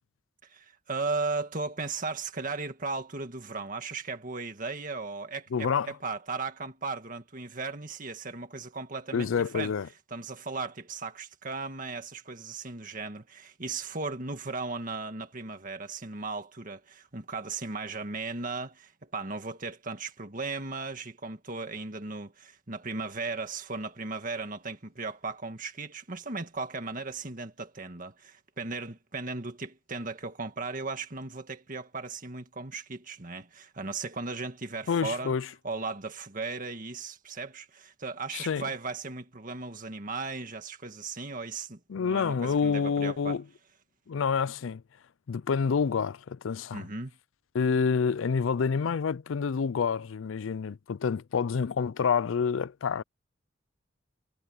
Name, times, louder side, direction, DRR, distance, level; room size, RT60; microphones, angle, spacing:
voice 1, 0.4-9.7 10.1-35.3 35.6-43.4 46.7-47.2, right 3 dB, 45° right, 1.9 m, -36 dB
voice 2, 5.5-5.9 9.1-9.9 34.9-35.5 38.3-38.6 41.9-43.4 44.1-44.8 45.3-46.8 47.5-53.0, left 6 dB, 85° left, 0.4 m, -28 dB
head